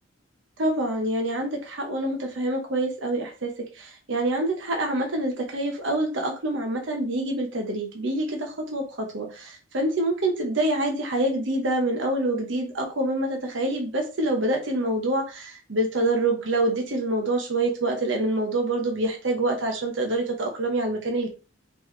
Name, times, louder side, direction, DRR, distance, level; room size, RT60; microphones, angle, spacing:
voice 1, 0.6-21.3, right 1 dB, 70° right, 2 dB, 0.9 m, -26 dB
4.2 x 3.1 x 3.2 m, 0.33 s
head